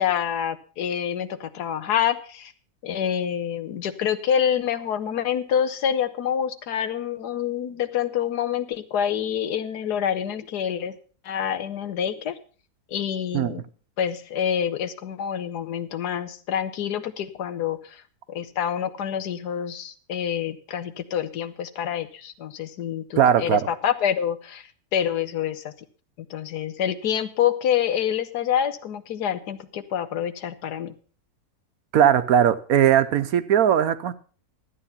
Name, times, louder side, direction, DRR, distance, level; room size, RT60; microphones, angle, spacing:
voice 1, 0.0-2.5 2.8-10.9 11.2-12.3 12.9-13.6 14.0-18.0 18.3-25.7 26.3-30.9, left 9 dB, 90° left, 12 dB, 1.5 m, -27 dB
voice 2, 23.2-23.7 31.9-34.1, right 9 dB, 70° right, 12 dB, 1.2 m, -19 dB
13.0 x 9.0 x 5.6 m, 0.40 s
omnidirectional pair, 1.7 m